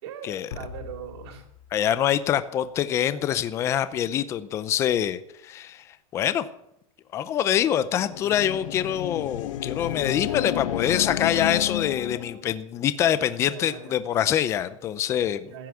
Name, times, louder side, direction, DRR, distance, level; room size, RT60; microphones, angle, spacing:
voice 1, 0.0-1.5 13.5-13.9 15.4-15.7, right 8 dB, 50° right, 4 dB, 3.7 m, -40 dB
sound 1, 0.5-2.9, left 7 dB, 85° left, 2.8 m, -43 dB
voice 2, 1.7-5.9 6.1-6.5 7.1-15.5, left 10 dB, 15° left, 13 dB, 0.6 m, -25 dB
sound 2, 7.8-12.4, left 12 dB, 60° left, 1.1 m, -31 dB
15.5 x 9.6 x 8.4 m, 0.77 s
supercardioid pair, 175°, 19 cm